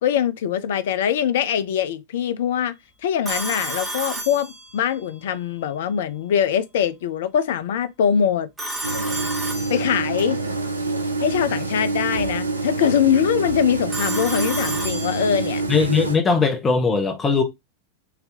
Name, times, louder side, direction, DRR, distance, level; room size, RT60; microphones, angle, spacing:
voice 1, 0.0-2.7 3.0-8.5 9.7-10.4 11.2-15.6, left 9 dB, 55° left, 0.4 m, -22 dB
Telephone, 3.2-5.0 8.6-10.3 13.9-15.6, right 2 dB, 10° right, 1.2 m, -31 dB
sound 1, 8.8-16.2, right 3 dB, 80° right, 0.6 m, -26 dB
voice 2, 15.7-17.4, left 5 dB, 20° left, 0.8 m, -19 dB
3.9 x 2.7 x 2.8 m
figure-of-eight pair, 90°, 0 cm